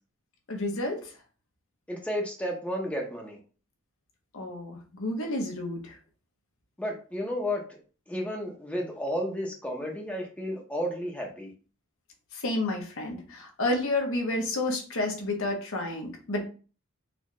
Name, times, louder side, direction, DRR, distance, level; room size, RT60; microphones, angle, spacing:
voice 1, 0.5-1.1 4.3-6.0 12.3-16.4, left 2 dB, 65° left, 2 dB, 0.8 m, -30 dB
voice 2, 1.9-3.4 6.8-7.8 8.1-11.5, equal, 5° left, 0 dB, 0.7 m, -32 dB
4.1 x 2.3 x 3.1 m, 0.37 s
head